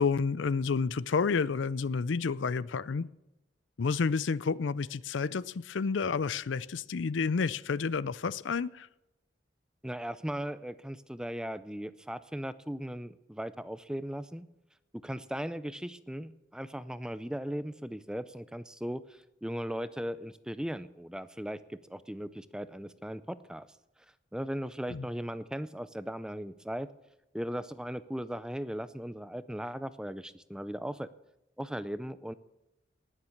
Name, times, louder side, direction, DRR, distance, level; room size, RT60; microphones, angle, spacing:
voice 1, 0.0-3.1 3.8-8.9 24.9-25.0, left 5 dB, 80° left, 19 dB, 0.5 m, -30 dB
voice 2, 9.8-14.5 15.0-23.7 24.3-26.9 27.3-31.1 31.6-32.3, equal, 5° right, 14 dB, 0.4 m, -38 dB
19.5 x 7.4 x 6.5 m, 0.92 s
head